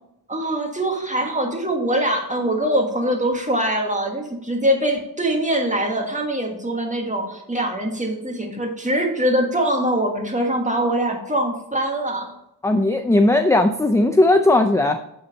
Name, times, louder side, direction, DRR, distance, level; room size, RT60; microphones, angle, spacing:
voice 1, 0.3-12.3, right 1 dB, 15° right, 2 dB, 1.6 m, -23 dB
voice 2, 12.6-15.0, left 2 dB, 5° left, 7 dB, 0.4 m, -17 dB
8.8 x 4.3 x 5.3 m, 0.80 s
wide cardioid pair, 95°, 42 cm